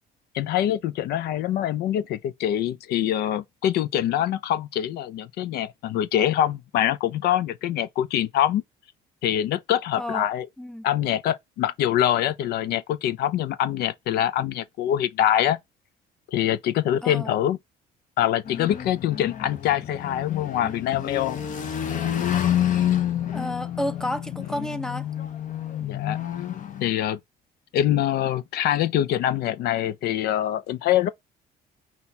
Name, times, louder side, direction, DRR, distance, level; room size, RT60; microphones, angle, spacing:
voice 1, 0.3-8.6 9.2-10.5 10.8-15.6 16.3-17.6 18.2-21.4 25.8-26.2 26.8-27.2 27.7-31.1, left 11 dB, 70° left, 0.5 m, -24 dB
voice 2, 10.0-10.3 10.6-10.9 17.0-17.4 23.3-25.1, left 1 dB, 5° left, 0.5 m, -31 dB
sound 1, 18.5-26.9, left 10 dB, 50° left, 0.9 m, -28 dB
5.5 x 2.4 x 4.1 m
cardioid pair, 110°, 17 cm